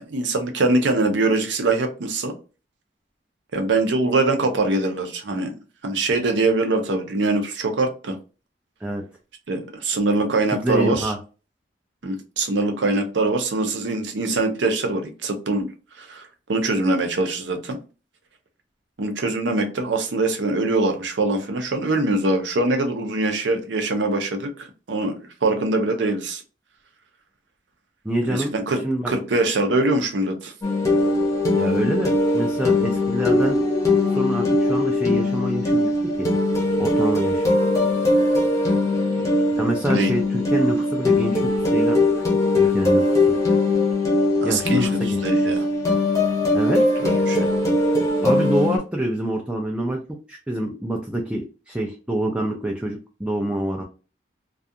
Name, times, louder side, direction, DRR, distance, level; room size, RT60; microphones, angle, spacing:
voice 1, 0.0-2.3 3.5-5.5 5.8-8.2 9.5-11.1 12.0-15.7 16.0-17.8 19.0-26.4 28.3-30.5 39.9-40.1 42.6-42.7 44.4-45.7 46.8-47.5, right 2 dB, 80° right, 5 dB, 0.6 m, -23 dB
voice 2, 10.6-11.2 28.0-28.5 28.8-29.2 31.5-33.6 34.1-36.3 36.8-37.4 39.6-42.0 42.5-43.4 44.4-45.6 46.5-46.8 48.2-50.0 50.3-53.8, right 1 dB, 5° right, 0 dB, 0.3 m, -26 dB
sound 1, 30.6-48.8, left 2 dB, 20° left, 0.7 m, -20 dB
2.4 x 2.3 x 2.6 m, 0.34 s
head